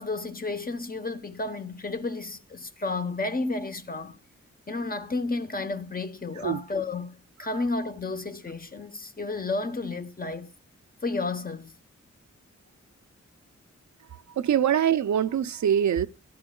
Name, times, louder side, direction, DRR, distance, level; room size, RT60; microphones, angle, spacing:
voice 1, 0.0-4.2 4.7-10.5 11.0-11.7, left 3 dB, 30° left, 0.8 m, -32 dB
voice 2, 14.4-16.1, right 9 dB, 75° right, 0.5 m, -23 dB
13.5 x 12.0 x 2.2 m
wide cardioid pair, 105°, 29 cm